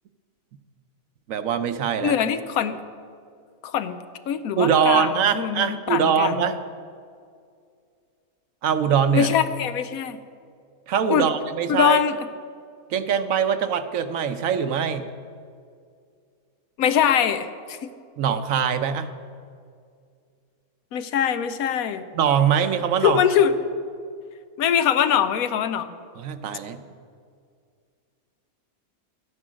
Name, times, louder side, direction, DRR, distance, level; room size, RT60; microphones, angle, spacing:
voice 1, 1.3-2.2 4.6-6.6 8.6-9.3 10.9-12.0 12.9-15.1 18.2-19.1 22.1-23.2 26.2-26.8, right 7 dB, 70° right, 10 dB, 1.1 m, -22 dB
voice 2, 2.0-2.8 3.6-4.0 4.3-6.4 9.1-10.2 11.1-11.3 11.7-12.2 16.8-17.8 20.9-22.0 23.0-23.5 24.6-25.9, left 9 dB, 80° left, 11 dB, 1.1 m, -22 dB
12.0 x 9.9 x 6.2 m, 2.2 s
omnidirectional pair, 1.5 m